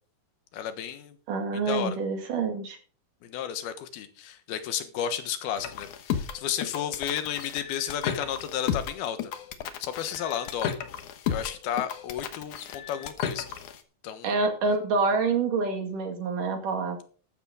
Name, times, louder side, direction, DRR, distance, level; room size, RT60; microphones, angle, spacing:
voice 1, 0.5-1.2 1.5-2.0 3.2-9.3 9.8-10.7 11.3-13.5 14.0-14.3, left 9 dB, 90° left, 10 dB, 3.3 m, -32 dB
voice 2, 1.3-2.8 14.2-17.0, right 4 dB, 65° right, 5 dB, 3.6 m, -27 dB
sound 1, 5.6-13.8, left 8 dB, 65° left, 2.4 m, -33 dB
14.0 x 12.0 x 3.8 m, 0.39 s
omnidirectional pair, 4.3 m